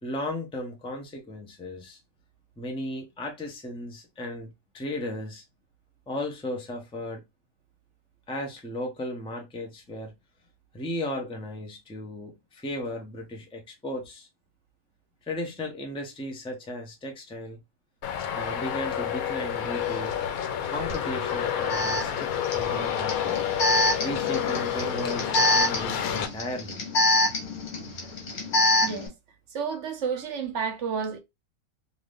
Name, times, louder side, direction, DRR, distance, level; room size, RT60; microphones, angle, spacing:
voice 1, 0.0-2.0 2.6-5.4 6.1-7.2 8.3-10.1 10.7-14.3 15.3-17.6 18.3-20.1 20.7-23.4 24.0-26.8, left 1 dB, 5° left, 0.4 m, -35 dB
Traffic noise roadway noise, 18.0-26.3, left 9 dB, 80° left, 1.1 m, -29 dB
Alarm, 20.9-21.0 21.7-29.1, left 1 dB, 60° left, 1.4 m, -26 dB
voice 2, 29.5-31.2, right 6 dB, 60° right, 1.1 m, -30 dB
2.7 x 2.6 x 3.4 m
omnidirectional pair, 1.5 m